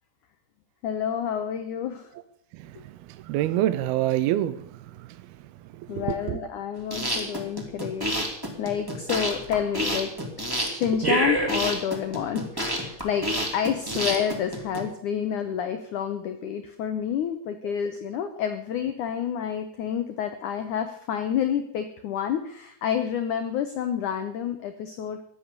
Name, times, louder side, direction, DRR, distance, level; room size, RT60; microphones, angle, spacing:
voice 1, 0.8-2.1 2.8-2.9 5.9-8.3 8.6-10.1 10.4-25.2, left 8 dB, 90° left, 1.7 m, -29 dB
voice 2, 3.1-5.3 5.7-6.4 11.0-11.4 17.6-17.7, right 13 dB, 80° right, 2.3 m, -27 dB
sound 1, 6.8-14.8, right 1 dB, 10° right, 1.6 m, -28 dB
15.5 x 10.5 x 6.8 m
omnidirectional pair, 5.1 m